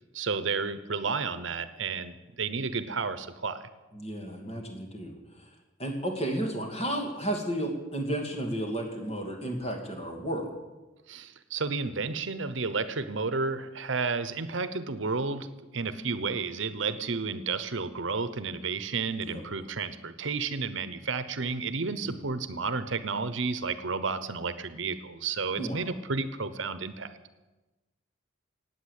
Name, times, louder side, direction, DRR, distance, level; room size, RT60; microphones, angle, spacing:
voice 1, 0.1-3.7 11.1-15.5 15.7-27.1, right 4 dB, 70° right, 12 dB, 0.9 m, -32 dB
voice 2, 3.9-5.1 5.8-10.5 19.2-19.4 22.1-22.2 25.6-25.9, right 1 dB, 30° left, 2 dB, 2.7 m, -32 dB
16.5 x 9.4 x 8.3 m, 1.1 s
head